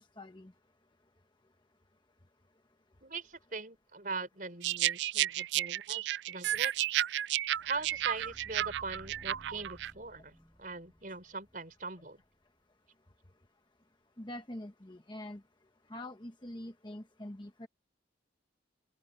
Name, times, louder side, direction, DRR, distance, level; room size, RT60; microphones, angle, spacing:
voice 1, 0.2-0.5 14.2-15.4 15.9-17.7, left 1 dB, 25° left, 1.1 m, -44 dB
voice 2, 3.0-6.7 7.6-12.2, right 4 dB, 45° right, 4.8 m, -41 dB
sound 1, 4.6-9.9, right 13 dB, 70° right, 0.3 m, -32 dB
sound 2, 7.5-12.4, equal, ahead, 6.2 m, -57 dB
open air
head